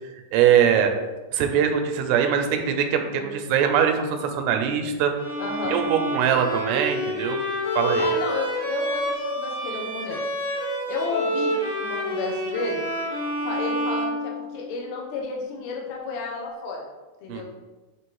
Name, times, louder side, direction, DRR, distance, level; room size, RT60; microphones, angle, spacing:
voice 1, 0.3-0.9 1.3-5.1 5.7-7.4 7.8-8.1 17.3-17.4, right 8 dB, 85° right, 5 dB, 2.6 m, -22 dB
Bowed string instrument, 5.2-14.9, equal, 60° left, 1.1 m, -28 dB
voice 2, 5.4-5.8 8.0-10.2 10.9-12.8 13.4-16.8 17.2-17.4, left 4 dB, 75° left, -2 dB, 1.6 m, -32 dB
6.9 x 3.2 x 4.6 m, 1.2 s
omnidirectional pair, 4.6 m